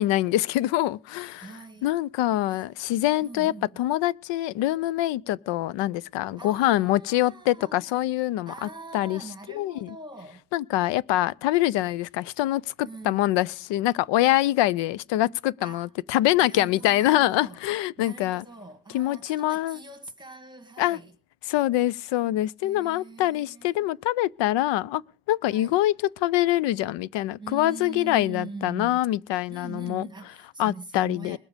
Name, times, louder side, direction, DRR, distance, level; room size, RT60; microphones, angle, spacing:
voice 1, 0.0-1.5 1.8-9.2 9.5-9.9 10.5-18.4 18.9-19.8 20.8-21.0 21.5-25.0 25.3-30.1 30.6-31.4, left 15 dB, 90° left, 0.6 m, -25 dB
voice 2, 1.4-1.9 2.5-2.6 3.2-3.8 6.4-8.0 8.5-10.4 12.8-13.3 15.6-15.9 16.4-17.6 18.0-21.1 22.6-24.0 25.5-25.7 27.4-29.0 29.5-31.4, right 3 dB, 10° right, 1.4 m, -42 dB
21.0 x 7.3 x 5.0 m
cardioid pair, 150°, 42 cm